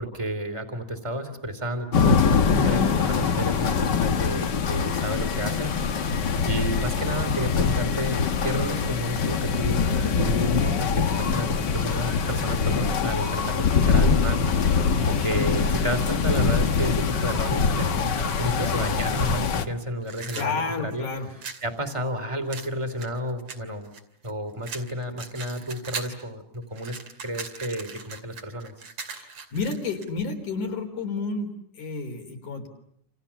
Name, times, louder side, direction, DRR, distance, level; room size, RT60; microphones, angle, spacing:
voice 1, 0.0-5.9 6.4-21.1 21.6-23.9 24.2-28.7, equal, 10° right, 8 dB, 2.7 m, -32 dB
sound 1, 1.9-19.7, left 5 dB, 50° left, 1.4 m, -23 dB
sound 2, 20.0-21.7 22.5-24.3 24.6-26.2 26.5-30.1, right 5 dB, 50° right, 3.6 m, -39 dB
voice 2, 20.3-21.3 29.1-32.7, left 4 dB, 75° left, 5 dB, 5.4 m, -31 dB
29.5 x 28.5 x 7.1 m, 0.71 s
omnidirectional pair, 3.6 m